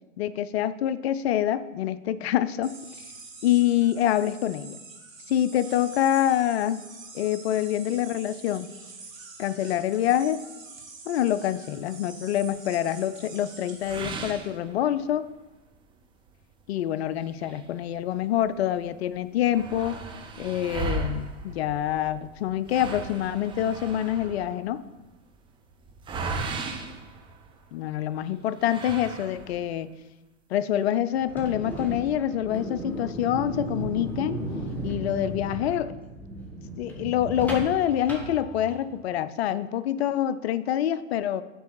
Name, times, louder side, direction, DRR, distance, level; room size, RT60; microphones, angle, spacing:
voice 1, 0.2-3.1 3.4-4.8 5.3-6.8 7.1-8.7 9.4-10.4 11.1-15.2 16.7-20.0 20.4-24.8 27.7-29.9 30.5-34.4 34.8-36.0 36.8-41.4, left 11 dB, 55° left, 14 dB, 0.5 m, -26 dB
sound 1, 2.6-14.2, right 4 dB, 85° right, 1.5 m, -46 dB
sound 2, 13.8-15.3 15.7-15.8 16.3-16.4 17.2-18.5 18.8-18.9 19.1-27.9 28.6-29.7, right 3 dB, 15° right, 0.5 m, -36 dB
sound 3, 31.2-39.0, right 1 dB, 5° left, 1.5 m, -35 dB
6.2 x 4.6 x 6.1 m, 1.1 s
figure-of-eight pair, 105°, 39 cm